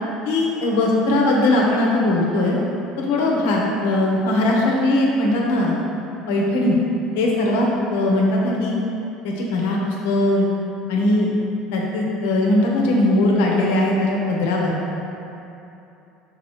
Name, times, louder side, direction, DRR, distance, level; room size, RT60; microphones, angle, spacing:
voice 1, 0.2-2.6 3.0-5.7 6.3-6.8 7.1-8.7 9.2-10.5 10.9-11.3 11.7-14.8, left 1 dB, 75° left, -2 dB, 1.1 m, -19 dB
5.7 x 4.2 x 4.7 m, 2.8 s
hypercardioid pair, 75°, 0 cm